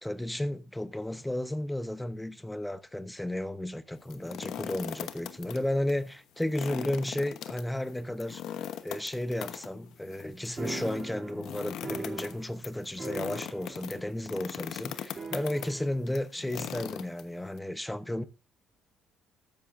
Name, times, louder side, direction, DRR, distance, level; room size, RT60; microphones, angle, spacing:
voice 1, 0.0-8.4 8.8-18.2, left 1 dB, 5° left, 0.9 m, -33 dB
sound 1, 4.0-5.6 5.9-6.0 6.4-17.6, left 10 dB, 70° left, 1.1 m, -40 dB
sound 2, 10.6-12.7 13.0-14.0 14.2-14.3 15.2-16.0, right 4 dB, 30° right, 2.9 m, -40 dB
14.0 x 10.5 x 2.6 m
cardioid pair, 105°, 0 cm